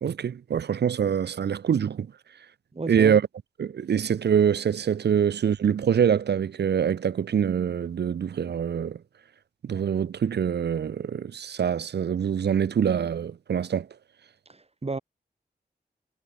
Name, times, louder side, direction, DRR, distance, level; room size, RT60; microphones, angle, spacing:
voice 1, 0.0-2.1 2.9-3.2 3.6-9.0 9.6-13.9, right 8 dB, 75° right, 0.6 m, -24 dB
voice 2, 2.7-3.2 14.5-15.0, right 3 dB, 35° right, 2.3 m, -33 dB
wide cardioid pair, 80°, 18 cm